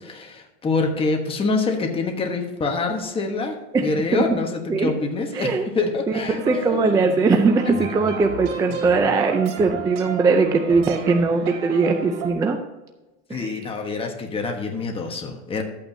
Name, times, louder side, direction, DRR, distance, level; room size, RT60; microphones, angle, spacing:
voice 1, 0.0-3.5 3.8-6.6 13.3-15.6, left 3 dB, 15° left, 3 dB, 1.2 m, -25 dB
voice 2, 3.7-4.2 4.7-4.9 5.3-5.7 6.1-12.6 13.3-13.6, right 4 dB, 10° right, 5 dB, 0.4 m, -20 dB
sound 1, 6.1-12.3, right 5 dB, 60° right, 2.7 m, -33 dB
12.5 x 8.8 x 2.7 m, 1.1 s
supercardioid pair, 145°, 36 cm